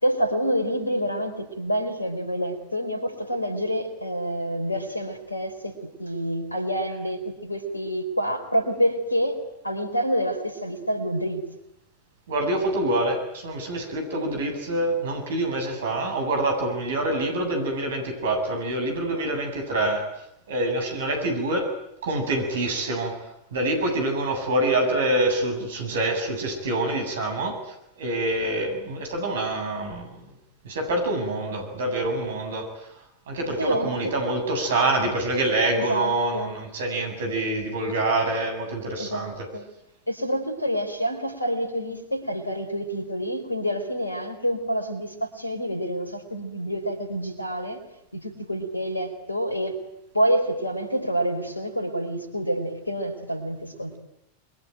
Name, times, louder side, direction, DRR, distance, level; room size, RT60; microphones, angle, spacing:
voice 1, 0.0-9.4 9.6-11.4 33.6-34.4 35.7-36.5 39.0-39.7 40.1-47.8 48.1-49.7 50.1-54.0, equal, 85° left, 8 dB, 4.5 m, -27 dB
voice 2, 12.3-20.0 20.5-21.7 22.0-23.2 23.5-27.6 28.0-30.1 30.6-32.7 33.3-39.5, right 2 dB, 60° right, 5 dB, 7.8 m, -26 dB
28.0 x 23.0 x 9.3 m, 0.81 s
figure-of-eight pair, 90°, 0 cm